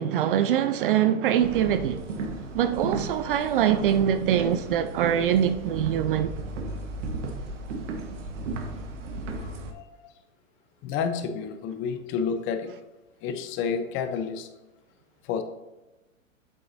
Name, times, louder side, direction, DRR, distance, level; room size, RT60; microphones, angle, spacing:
voice 1, 0.0-2.0 2.5-6.3, right 10 dB, 45° right, 0.4 m, -23 dB
sound 1, 1.4-9.7, right 3 dB, 60° right, 1.5 m, -35 dB
voice 2, 9.4-10.1 10.8-12.7 13.2-14.5 15.2-15.4, left 6 dB, 30° left, 0.8 m, -30 dB
8.2 x 7.5 x 2.7 m
hypercardioid pair, 115°, 41 cm